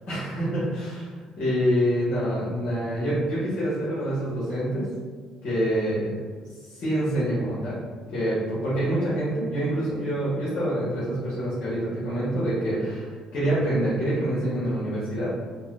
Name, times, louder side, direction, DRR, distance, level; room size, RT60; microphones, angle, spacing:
voice 1, 0.1-1.1 1.4-4.9 5.4-6.1 6.6-7.8 8.1-15.3, right 1 dB, 65° left, -11 dB, 1.2 m, -26 dB
3.9 x 2.1 x 2.5 m, 1.6 s
supercardioid pair, 70°, 2 cm